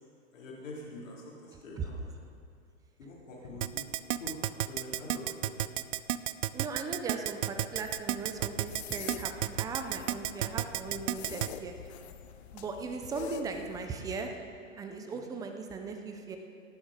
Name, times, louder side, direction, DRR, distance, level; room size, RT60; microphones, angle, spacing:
voice 1, 0.3-2.1 3.0-5.6 15.1-15.3, left 2 dB, 75° left, -4 dB, 3.4 m, -45 dB
Keyboard (musical), 3.6-11.5, right 13 dB, 65° right, 0.6 m, -31 dB
voice 2, 6.5-11.8 12.5-14.3 14.8-16.4, right 4 dB, 10° right, 5 dB, 0.5 m, -38 dB
sound 1, 7.8-13.9, left 9 dB, 55° left, 0.8 m, -46 dB
17.5 x 7.3 x 5.0 m, 2.4 s
hypercardioid pair, 130°, 39 cm